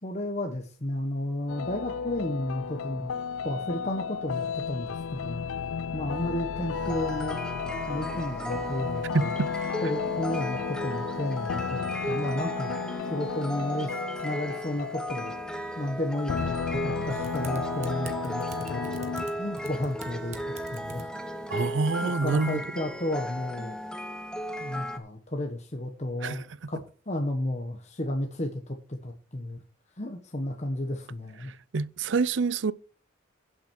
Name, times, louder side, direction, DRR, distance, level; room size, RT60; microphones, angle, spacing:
voice 1, 0.0-3.2 3.4-5.4 5.9-7.4 7.9-9.3 9.8-12.7 13.1-13.9 14.2-15.3 15.8-19.0 19.4-21.1 22.0-23.8 24.6-29.6 30.0-31.5, left 1 dB, 35° left, 1.2 m, -33 dB
sound 1, 1.5-15.6 16.3-19.3, left 6 dB, 80° left, 0.4 m, -33 dB
sound 2, 6.7-25.0, equal, 5° left, 0.9 m, -36 dB
voice 2, 9.1-9.5 21.5-22.6 26.2-26.4 31.7-32.7, right 4 dB, 65° right, 0.5 m, -26 dB
Typing, 17.1-22.1, right 3 dB, 35° right, 1.4 m, -45 dB
8.4 x 7.5 x 6.3 m
head